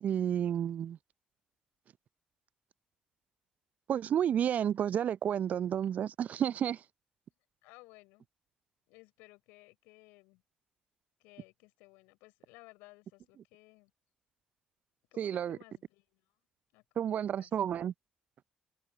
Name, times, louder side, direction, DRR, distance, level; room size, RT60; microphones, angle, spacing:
voice 1, 0.0-1.0 3.9-6.8 15.2-15.6 17.0-17.9, right 9 dB, 55° right, 0.5 m, -31 dB
voice 2, 7.6-8.3 8.9-10.4 11.2-13.9 15.1-16.2 16.7-17.5, left 25 dB, 70° left, 5.4 m, -58 dB
figure-of-eight pair, 45°, 3 cm